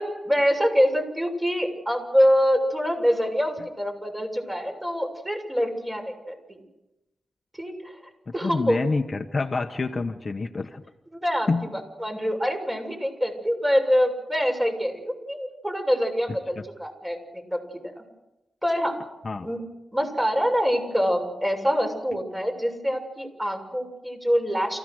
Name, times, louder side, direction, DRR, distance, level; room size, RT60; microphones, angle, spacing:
voice 1, 0.0-6.6 7.6-7.7 8.3-8.8 11.1-11.5 12.0-17.6 18.0-18.1 18.6-18.9 19.4-19.6 19.9-24.8, equal, 15° right, 2 dB, 7.0 m, -25 dB
voice 2, 8.4-10.8 11.5-11.7 16.6-16.7 19.2-19.5, left 3 dB, 45° left, 6 dB, 1.3 m, -27 dB
29.0 x 16.0 x 6.5 m, 0.93 s
cardioid pair, 70°, 0 cm